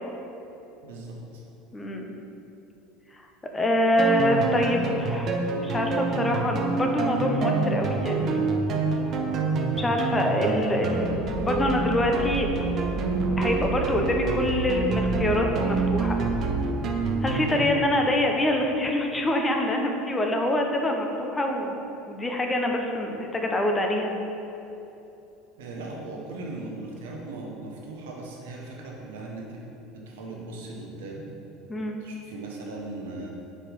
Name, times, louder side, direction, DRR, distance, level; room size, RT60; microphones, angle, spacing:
voice 1, 0.8-1.4 25.6-29.6 29.9-31.2 32.0-33.3, right 2 dB, 75° right, -2 dB, 1.1 m, -38 dB
voice 2, 1.7-2.0 3.5-5.4 5.6-8.4 9.8-12.5 13.4-16.2 17.2-24.1 31.7-32.0, left 1 dB, 20° left, 2 dB, 0.9 m, -25 dB
sound 1, 4.0-17.7, right 3 dB, 45° right, 0.7 m, -27 dB
4.9 x 4.3 x 5.2 m, 2.9 s
hypercardioid pair, 75°, 0 cm